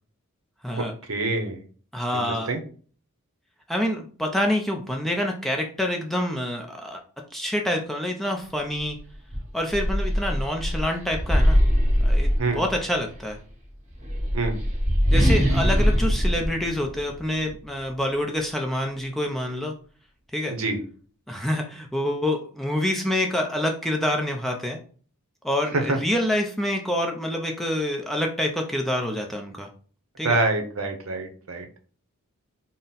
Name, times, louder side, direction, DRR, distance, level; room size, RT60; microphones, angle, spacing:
voice 1, 1.1-1.6 2.1-2.6 12.4-12.6 14.3-14.6 20.5-20.8 25.7-26.0 30.2-31.7, right 2 dB, 65° right, 5 dB, 0.7 m, -26 dB
voice 2, 1.9-2.5 3.7-7.0 7.3-9.0 9.5-11.6 12.0-13.4 15.1-19.7 20.3-20.5 21.3-24.8 25.4-29.7 30.2-30.4, left 1 dB, ahead, 1 dB, 0.4 m, -27 dB
sound 1, 8.8-8.9 9.3-12.9 13.9-17.5, equal, 30° right, 1.2 m, -22 dB
3.8 x 2.0 x 4.0 m, 0.42 s
head